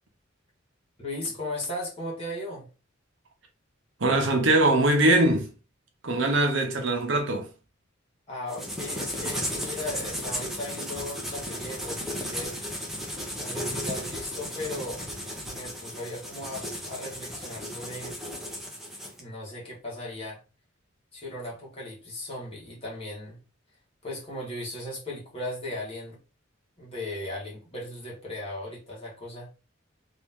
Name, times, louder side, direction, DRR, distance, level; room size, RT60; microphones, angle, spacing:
voice 1, 1.0-2.7 8.3-12.5 13.4-15.0 15.4-18.2 19.2-20.4 21.1-23.4 24.0-26.2 26.8-29.5, left 1 dB, 30° left, 1.6 m, -37 dB
voice 2, 4.0-5.5 6.0-7.5, right 2 dB, 65° right, 0.8 m, -22 dB
sound 1, 8.5-19.2, equal, ahead, 0.8 m, -35 dB
3.0 x 2.9 x 3.5 m
head